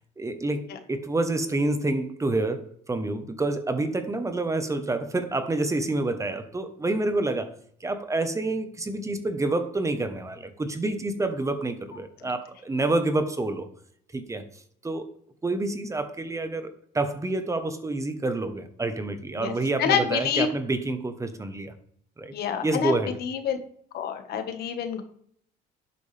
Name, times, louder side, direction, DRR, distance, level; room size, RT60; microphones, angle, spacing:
voice 1, 0.2-7.5 7.8-13.7 14.1-14.5 14.8-15.1 15.4-21.7 22.2-22.3 22.6-23.2, right 2 dB, 20° right, 1.1 m, -28 dB
voice 2, 19.8-20.5 22.3-22.9 23.2-23.6 23.9-25.0, left 8 dB, 70° left, 1.6 m, -27 dB
11.5 x 8.4 x 3.5 m
cardioid pair, 110°, 17 cm